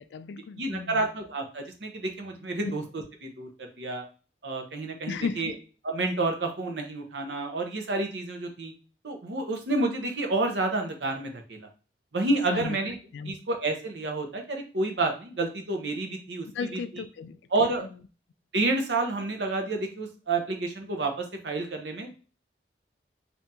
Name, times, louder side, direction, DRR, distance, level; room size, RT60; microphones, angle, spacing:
voice 1, 0.0-1.0 2.6-2.8 5.1-5.5 12.5-12.8 13.1-13.4 16.5-17.4, left 5 dB, 80° left, 13 dB, 0.3 m, -34 dB
voice 2, 0.6-2.8 3.2-4.0 4.4-5.5 5.8-8.7 9.0-11.7 12.1-12.9 13.3-16.8 17.5-17.8 18.5-22.2, right 2 dB, 85° right, 4 dB, 0.8 m, -29 dB
3.4 x 2.7 x 2.8 m, 0.36 s
head